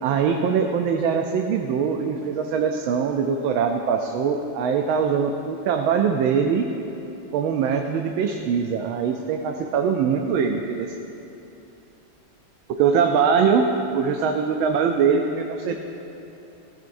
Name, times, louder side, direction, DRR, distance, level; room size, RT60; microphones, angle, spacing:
voice 1, 0.0-6.7 7.3-10.9 12.8-15.8, right 6 dB, 85° right, 3 dB, 1.4 m, -22 dB
16.0 x 14.5 x 2.6 m, 3.0 s
omnidirectional pair, 2.2 m